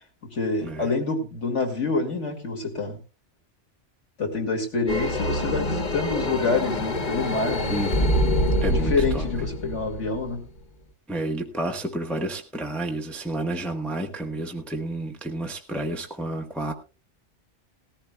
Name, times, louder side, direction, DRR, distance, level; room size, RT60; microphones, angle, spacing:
voice 1, 0.3-3.0 4.2-7.9 8.6-10.4, left 3 dB, 80° left, 2.5 m, -27 dB
sound 1, 4.9-10.6, left 1 dB, 40° left, 1.0 m, -25 dB
voice 2, 7.7-9.2 11.1-16.7, right 1 dB, ahead, 1.0 m, -31 dB
19.0 x 14.5 x 2.2 m
omnidirectional pair, 1.2 m